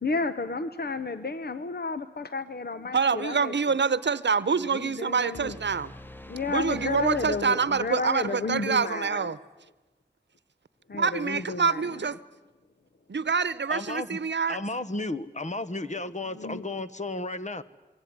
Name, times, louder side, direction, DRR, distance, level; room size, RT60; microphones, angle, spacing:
voice 1, 0.0-3.5 4.7-5.6 6.3-9.3 10.9-11.9 16.4-16.6, left 3 dB, 60° left, 12 dB, 1.0 m, -32 dB
voice 2, 2.9-5.9 6.5-9.4 11.0-12.2 13.1-14.6, right 5 dB, 85° right, 17 dB, 0.8 m, -26 dB
sound 1, 5.3-8.3, left 1 dB, 10° left, 0.9 m, -45 dB
voice 3, 13.7-14.2 14.5-17.6, left 2 dB, 40° left, 12 dB, 1.3 m, -33 dB
27.5 x 22.5 x 9.6 m, 1.1 s
wide cardioid pair, 70°, 18 cm